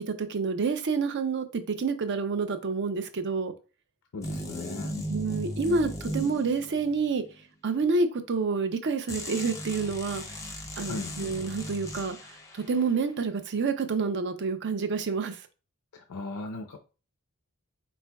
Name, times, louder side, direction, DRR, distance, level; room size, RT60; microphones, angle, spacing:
voice 1, 0.0-3.5 5.1-7.2 7.6-10.4 10.8-12.2 12.5-15.4, right 4 dB, 55° right, 0.6 m, -28 dB
voice 2, 4.1-4.9 10.8-11.2 15.9-16.8, left 3 dB, 80° left, 0.5 m, -37 dB
sound 1, 4.2-7.1 9.1-12.5, equal, 15° left, 0.5 m, -37 dB
4.3 x 4.2 x 2.2 m
head